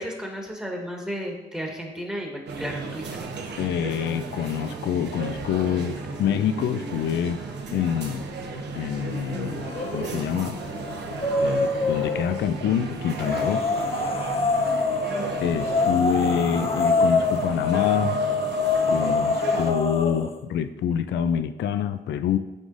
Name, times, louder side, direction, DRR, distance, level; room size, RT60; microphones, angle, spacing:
voice 1, 0.0-3.3, equal, 5° right, 0 dB, 1.4 m, -33 dB
sound 1, 2.5-19.7, right 3 dB, 60° right, 1.0 m, -34 dB
voice 2, 3.6-7.4 7.7-8.2 8.5-10.6 11.4-13.7 15.4-18.2 18.9-22.4, left 9 dB, 65° left, 10 dB, 0.4 m, -26 dB
sound 2, 9.6-10.2 10.6-12.4 13.2-20.3, left 3 dB, 30° left, 0.7 m, -25 dB
11.5 x 3.8 x 2.6 m, 1.1 s
cardioid pair, 90°, 20 cm